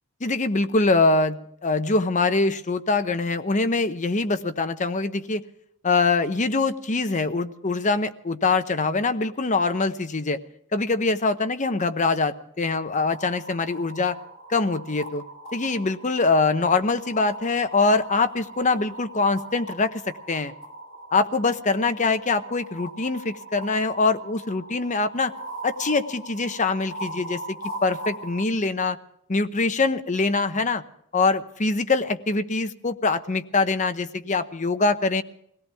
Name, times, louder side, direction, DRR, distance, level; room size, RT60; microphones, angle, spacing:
voice 1, 0.2-5.4 5.8-10.4 10.7-14.2 14.5-15.2 15.5-20.5 21.1-25.3 25.6-29.0 29.3-30.8 31.1-35.2, left 3 dB, 35° left, 10 dB, 0.9 m, -23 dB
sound 1, 12.9-28.4, right 2 dB, 65° left, 2.5 m, -40 dB
24.0 x 17.5 x 3.5 m, 0.70 s
head